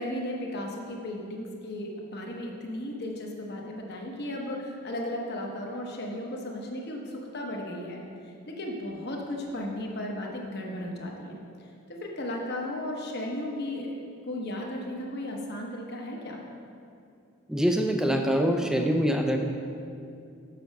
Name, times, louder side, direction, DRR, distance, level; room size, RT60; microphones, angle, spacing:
voice 1, 0.0-8.0 8.5-14.0 14.3-16.4, left 1 dB, 45° left, 0 dB, 1.0 m, -35 dB
voice 2, 17.5-19.5, equal, 5° right, 4 dB, 0.4 m, -24 dB
6.8 x 6.3 x 5.3 m, 2.5 s
head